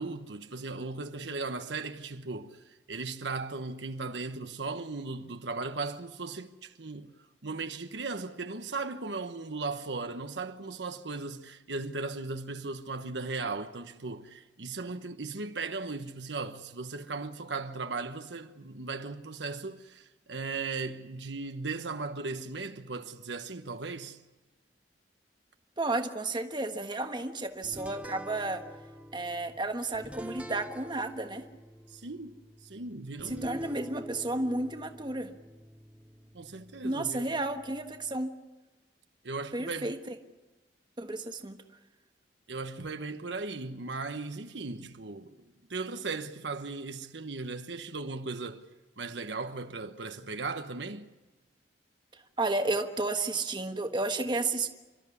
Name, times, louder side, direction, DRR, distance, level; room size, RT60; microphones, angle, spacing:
voice 1, 0.0-7.1 7.4-24.2 31.9-33.6 36.3-37.3 39.2-39.9 42.5-48.7 49.0-51.1, right 3 dB, 80° right, 1.1 m, -37 dB
voice 2, 25.8-28.6 29.1-31.4 33.2-35.3 36.8-38.3 39.5-40.1 41.0-41.6 52.1-54.7, right 2 dB, 25° right, 1.4 m, -32 dB
sound 1, 27.6-38.3, equal, 5° right, 0.9 m, -47 dB
29.0 x 13.0 x 9.8 m
head